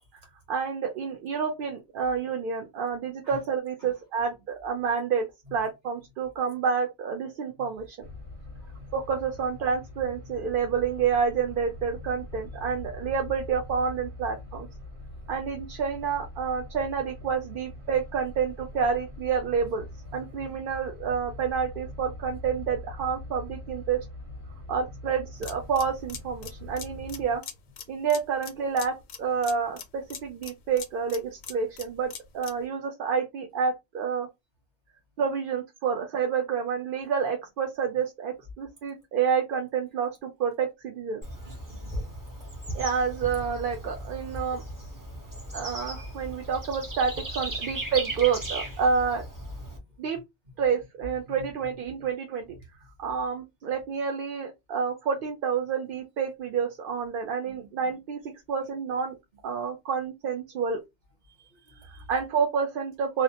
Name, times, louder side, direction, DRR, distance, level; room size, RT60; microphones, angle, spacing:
voice 1, 0.5-8.0 8.9-14.7 15.3-19.9 20.1-24.0 24.7-27.4 27.9-34.3 35.2-41.2 42.7-44.6 45.5-49.2 50.0-50.2 50.6-52.5 53.0-58.2 58.5-59.2 59.4-60.8 62.1-63.2, right 6 dB, 60° right, 0.7 m, -29 dB
sound 1, 8.0-27.4, left 2 dB, 90° right, 1.3 m, -43 dB
sound 2, 25.4-32.7, left 7 dB, 55° left, 0.6 m, -43 dB
Bird / Insect, 41.2-49.8, right 1 dB, 20° right, 0.6 m, -37 dB
voice 2, 41.4-42.1 45.1-45.2 47.5-47.9 51.2-51.5 51.8-52.1 57.4-57.7 61.3-62.1, left 3 dB, 45° right, 1.2 m, -49 dB
2.8 x 2.0 x 2.7 m
omnidirectional pair, 1.1 m